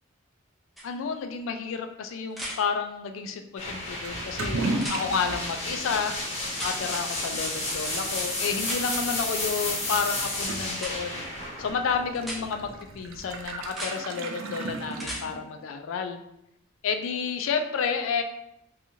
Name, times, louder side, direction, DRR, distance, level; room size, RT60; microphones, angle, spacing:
voice 1, 0.8-6.1 6.6-11.3 11.6-16.2 16.8-18.2, left 5 dB, 70° left, 7 dB, 0.3 m, -30 dB
sound 1, 0.8-0.9 2.3-2.6 4.7-5.0 6.5-6.8 8.6-8.8 10.8-10.9 12.2-12.4 13.6-13.9 14.9-15.2 17.3-17.4, equal, ahead, 0.4 m, -35 dB
sound 2, 3.6-13.3, left 2 dB, 30° left, 0.7 m, -32 dB
Toilet flush / Liquid, 4.0-15.7, right 2 dB, 75° right, 0.3 m, -37 dB
2.8 x 2.3 x 2.6 m, 0.80 s
head